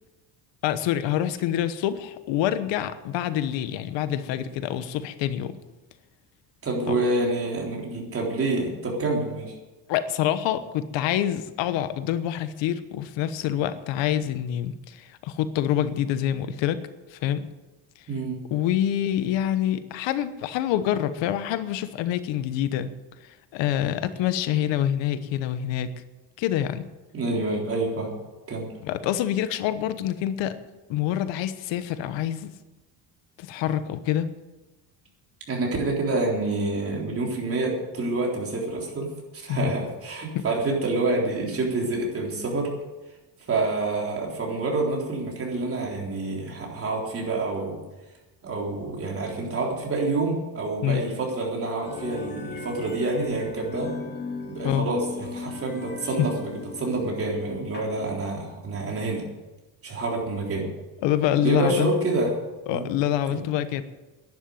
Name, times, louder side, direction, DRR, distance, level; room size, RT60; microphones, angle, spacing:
voice 1, 0.6-5.6 6.9-7.0 9.9-16.8 17.1-17.5 18.5-22.9 23.5-25.9 26.4-26.8 28.8-30.6 30.9-32.5 33.4-34.3 39.5-39.7 40.3-40.4 50.8-51.0 54.6-54.9 56.2-56.3 61.0-61.9 62.7-63.9, left 11 dB, 90° left, 12 dB, 1.2 m, -26 dB
voice 2, 6.6-9.6 18.1-18.4 27.1-28.1 28.5-28.7 35.5-42.7 43.5-47.8 48.4-53.9 54.5-59.2 59.8-60.7 61.4-62.3 62.7-62.9 63.3-63.4, right 2 dB, 30° right, -1 dB, 3.7 m, -27 dB
sound 1, 51.8-58.2, left 4 dB, 25° left, 2.3 m, -37 dB
11.0 x 10.5 x 9.2 m, 1.1 s
cardioid pair, 155°, 43 cm